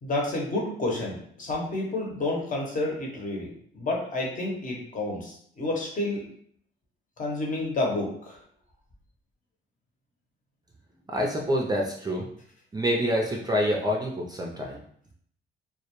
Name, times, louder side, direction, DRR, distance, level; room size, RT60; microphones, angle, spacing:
voice 1, 0.0-6.3 7.2-8.4, left 2 dB, 40° left, -2 dB, 0.9 m, -30 dB
voice 2, 11.1-12.3 12.7-14.8, equal, 20° right, -1 dB, 0.4 m, -27 dB
2.2 x 2.1 x 2.9 m, 0.62 s
cardioid pair, 90°, 20 cm